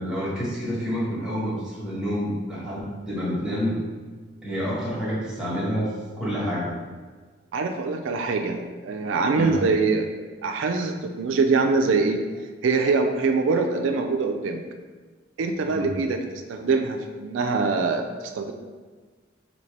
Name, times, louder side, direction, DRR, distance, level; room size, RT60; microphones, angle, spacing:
voice 1, 0.0-3.8 4.4-6.7 9.3-9.6 15.6-15.9, equal, 5° right, -8 dB, 1.2 m, -28 dB
voice 2, 7.5-12.2 12.6-14.6 15.4-18.0 18.3-18.5, right 4 dB, 85° right, 5 dB, 0.3 m, -24 dB
4.1 x 2.8 x 3.3 m, 1.4 s
head